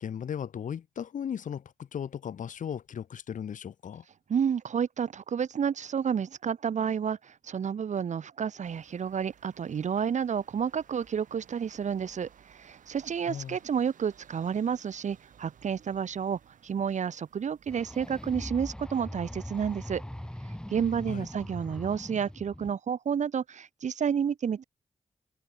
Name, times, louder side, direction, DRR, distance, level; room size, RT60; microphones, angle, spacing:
voice 1, 0.0-4.0 13.3-13.6 21.1-21.3, left 8 dB, 75° left, 1.1 m, -36 dB
voice 2, 4.3-20.0 20.7-24.6, right 7 dB, 65° right, 0.7 m, -30 dB
sound 1, 8.6-18.3, right 8 dB, 80° right, 2.5 m, -58 dB
sound 2, 17.7-22.7, left 1 dB, 5° left, 1.6 m, -41 dB
open air
cardioid pair, 45°, 13 cm